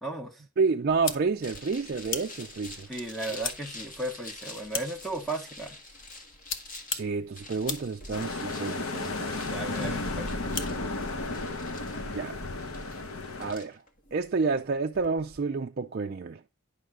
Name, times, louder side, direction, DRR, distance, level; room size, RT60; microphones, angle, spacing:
voice 1, 0.0-0.4 2.9-5.8 9.5-10.3, right 2 dB, ahead, 1.0 m, -35 dB
voice 2, 0.6-2.9 6.9-9.5 12.1-12.4 13.4-13.8 14.1-16.4, right 4 dB, 45° right, 0.4 m, -29 dB
sound 1, 0.9-12.3, left 5 dB, 60° left, 1.1 m, -41 dB
sound 2, 1.4-15.4, left 2 dB, 40° left, 1.6 m, -47 dB
sound 3, 8.1-13.5, left 2 dB, 85° left, 1.1 m, -33 dB
10.0 x 3.7 x 6.1 m
head